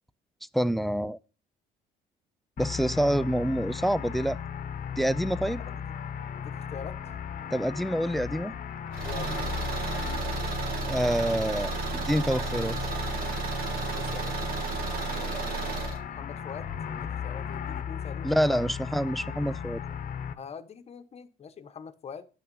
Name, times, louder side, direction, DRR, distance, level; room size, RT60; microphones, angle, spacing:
voice 1, 0.5-1.2 2.6-4.4 5.0-5.6 7.5-8.5 10.9-12.8 18.2-19.8, equal, ahead, 0.4 m, -27 dB
sound 1, 2.6-20.3, left 8 dB, 55° left, 1.0 m, -36 dB
voice 2, 6.4-7.0 9.0-9.7 13.9-14.5 15.1-18.7 20.3-22.3, left 6 dB, 40° left, 1.0 m, -44 dB
Car / Engine, 8.9-16.0, right 5 dB, 60° right, 1.7 m, -33 dB
9.8 x 6.1 x 5.3 m
cardioid pair, 110°, 17 cm